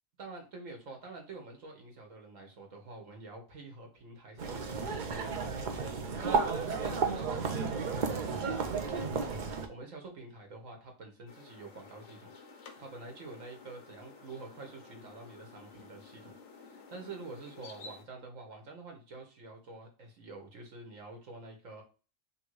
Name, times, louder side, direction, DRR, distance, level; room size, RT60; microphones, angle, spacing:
voice 1, 0.2-5.7 6.2-12.3 12.8-21.8, right 3 dB, 80° right, 2 dB, 1.6 m, -48 dB
sound 1, 4.4-9.7, right 4 dB, 50° right, 0.6 m, -33 dB
sound 2, 11.3-18.0, left 4 dB, 70° left, 1.1 m, -52 dB
3.4 x 2.8 x 4.6 m, 0.35 s
omnidirectional pair, 1.3 m